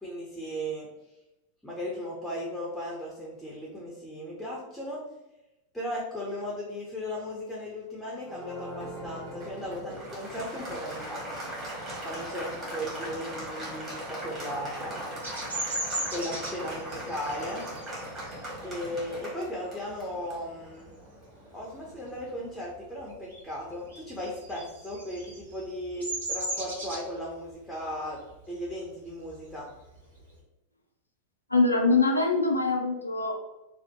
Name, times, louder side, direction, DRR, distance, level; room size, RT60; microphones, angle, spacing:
voice 1, 0.0-0.9 1.6-5.0 5.7-11.2 12.0-15.3 16.1-17.7 18.6-20.9 21.5-28.2 28.5-29.7, equal, 5° left, -4 dB, 0.6 m, -36 dB
Applause, 8.2-22.6, right 1 dB, 20° right, 1.1 m, -41 dB
sound 1, 8.7-19.2, equal, 60° right, 1.0 m, -44 dB
Bird vocalization bird call bird song, 15.2-20.4 20.9-21.2 21.5-22.7 23.0-30.4, right 1 dB, 75° right, 1.3 m, -37 dB
voice 2, 31.5-33.4, left 3 dB, 80° left, 2 dB, 0.4 m, -23 dB
2.7 x 2.0 x 2.8 m, 0.95 s
figure-of-eight pair, 90°, 0 cm